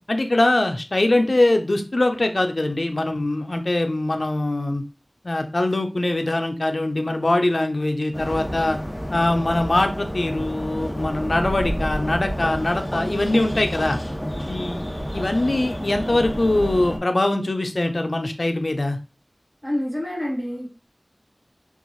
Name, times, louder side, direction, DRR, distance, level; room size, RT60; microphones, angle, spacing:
voice 1, 0.1-4.8 5.2-8.8 9.1-14.0 14.5-19.0, left 2 dB, 80° left, 6 dB, 0.6 m, -22 dB
sound 1, 8.1-17.0, equal, 20° left, 1.3 m, -29 dB
voice 2, 19.6-20.7, left 1 dB, 5° right, -5 dB, 2.6 m, -27 dB
4.5 x 3.5 x 3.0 m, 0.32 s
wide cardioid pair, 40°, 0 cm